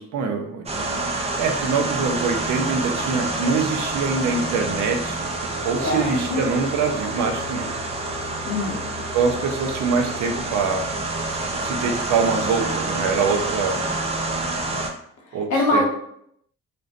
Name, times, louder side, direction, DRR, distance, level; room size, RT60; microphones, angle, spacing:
voice 1, 0.0-7.7 9.1-10.9 11.6-13.8 15.3-15.8, right 5 dB, 70° right, 4 dB, 0.6 m, -24 dB
sound 1, 0.7-14.9, right 2 dB, 20° right, 0.4 m, -28 dB
voice 2, 5.8-6.4 8.4-8.8 15.3-15.8, left 2 dB, 90° left, -1 dB, 0.8 m, -23 dB
2.5 x 2.2 x 2.4 m, 0.69 s
cardioid pair, 90°, 30 cm